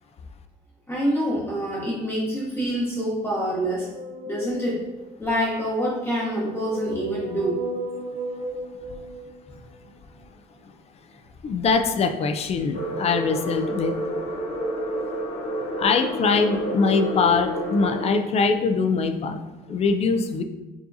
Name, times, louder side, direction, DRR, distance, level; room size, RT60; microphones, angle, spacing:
voice 1, 0.9-3.9 4.3-4.9 5.2-7.6, equal, 15° left, -6 dB, 0.8 m, -26 dB
sound 1, 3.5-5.1 6.0-9.9, right 1 dB, 35° right, 0.4 m, -36 dB
voice 2, 11.4-14.0 15.8-19.4 19.7-20.4, left 4 dB, 40° left, 8 dB, 0.3 m, -22 dB
sound 2, 12.7-18.1, equal, 80° left, 0.8 m, -29 dB
4.7 x 2.8 x 2.6 m, 1.1 s
cardioid pair, 110°, 17 cm